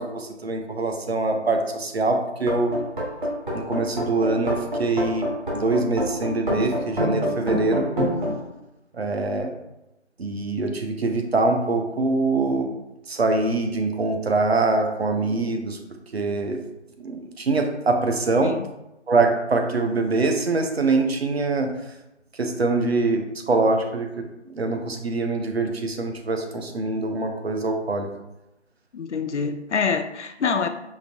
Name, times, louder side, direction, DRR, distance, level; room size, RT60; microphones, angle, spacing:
voice 1, 0.0-2.7 3.5-5.3 5.5-7.8 8.9-9.5 10.2-12.7 13.1-15.8 16.1-16.6 17.0-18.6 19.1-21.7 22.3-28.1, right 3 dB, 60° right, 4 dB, 0.7 m, -24 dB
sound 1, 2.4-8.3, equal, 45° right, 1.2 m, -26 dB
voice 2, 28.9-30.7, left 5 dB, 80° left, 9 dB, 0.5 m, -25 dB
5.0 x 2.6 x 2.6 m, 0.91 s
figure-of-eight pair, 160°, 35 cm